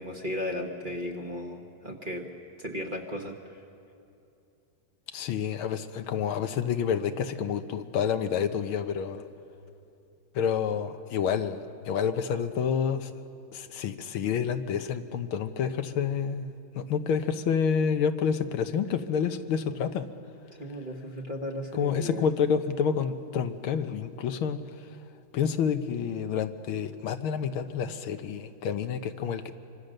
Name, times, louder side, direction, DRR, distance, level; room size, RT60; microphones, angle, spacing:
voice 1, 0.0-2.3 2.6-3.6 20.6-22.3, left 1 dB, 25° right, 2 dB, 1.4 m, -35 dB
voice 2, 5.1-9.3 10.4-13.1 13.5-20.1 21.7-24.6 25.3-29.5, left 7 dB, 85° left, 8 dB, 1.8 m, -29 dB
26.0 x 25.0 x 6.6 m, 2.7 s
omnidirectional pair, 2.3 m